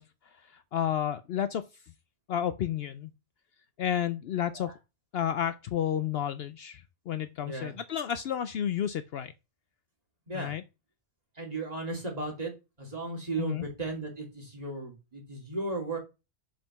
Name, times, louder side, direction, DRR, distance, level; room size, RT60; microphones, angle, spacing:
voice 1, 0.0-1.6 2.3-3.1 3.8-4.7 5.1-9.3 10.3-10.6 13.4-13.6, left 9 dB, 65° left, 0.7 m, -31 dB
voice 2, 7.4-7.8 10.3-10.6 11.3-12.5 12.8-16.0, right 2 dB, 35° right, 2.7 m, -35 dB
5.5 x 5.1 x 5.9 m
omnidirectional pair, 1.2 m